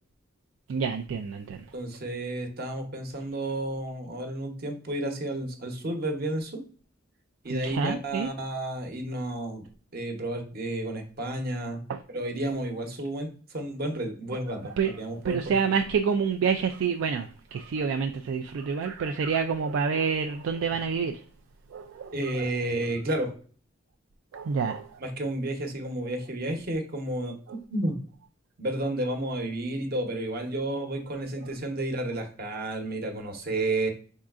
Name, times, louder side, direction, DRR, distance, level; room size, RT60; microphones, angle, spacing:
voice 1, 0.7-1.7 7.5-8.3 11.9-12.0 14.3-21.2 21.7-22.5 24.3-25.0 27.5-27.6 33.3-33.4, right 6 dB, 90° right, 0.3 m, -28 dB
voice 2, 1.7-6.6 7.4-9.6 9.9-11.8 12.1-15.6 18.8-18.9 22.1-23.3 25.0-27.4 27.7-28.0 28.6-33.9, right 1 dB, 50° right, 0.9 m, -31 dB
5.3 x 3.7 x 2.4 m
head